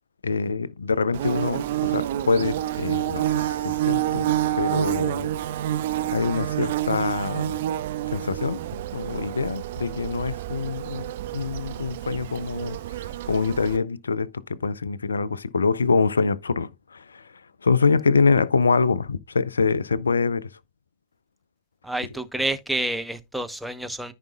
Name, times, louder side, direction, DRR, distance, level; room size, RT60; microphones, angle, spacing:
voice 1, 0.2-4.3 4.6-5.3 6.1-7.6 8.1-8.6 8.9-12.8 13.3-17.2 17.6-20.5, left 4 dB, 75° left, 0.5 m, -25 dB
Bird / Buzz, 1.1-13.8, right 13 dB, 55° right, 0.5 m, -28 dB
voice 2, 21.8-24.1, right 1 dB, 5° right, 0.9 m, -29 dB
14.0 x 5.0 x 2.3 m
figure-of-eight pair, 90°, 0 cm